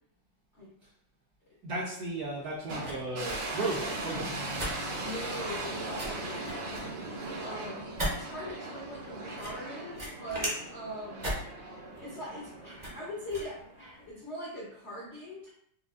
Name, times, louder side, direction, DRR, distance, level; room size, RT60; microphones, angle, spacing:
voice 1, 1.6-4.4, right 2 dB, 70° right, -5 dB, 1.0 m, -35 dB
sound 1, 2.1-14.1, right 1 dB, 45° right, 0.5 m, -40 dB
sound 2, 2.7-13.9, right 2 dB, 85° right, 2.0 m, -39 dB
Bass guitar, 4.2-8.2, left 2 dB, 80° left, 1.4 m, -49 dB
voice 2, 5.0-6.8 7.4-11.3 12.0-15.5, left 1 dB, 65° left, -6 dB, 0.7 m, -41 dB
5.1 x 2.4 x 2.4 m, 0.68 s
omnidirectional pair, 2.4 m